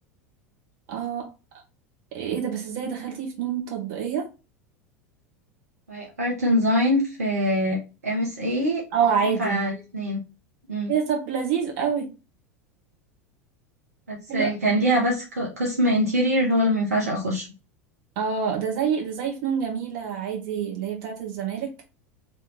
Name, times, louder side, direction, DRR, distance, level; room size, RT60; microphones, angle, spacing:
voice 1, 0.9-1.3 2.1-4.3 8.9-9.6 10.9-12.1 14.3-14.8 18.1-21.7, right 7 dB, 50° right, 1.5 m, -27 dB
voice 2, 5.9-8.8 9.2-10.2 10.7-10.9 14.1-17.5, equal, 75° right, 1.1 m, -23 dB
3.4 x 3.0 x 3.8 m
figure-of-eight pair, 80°, 8 cm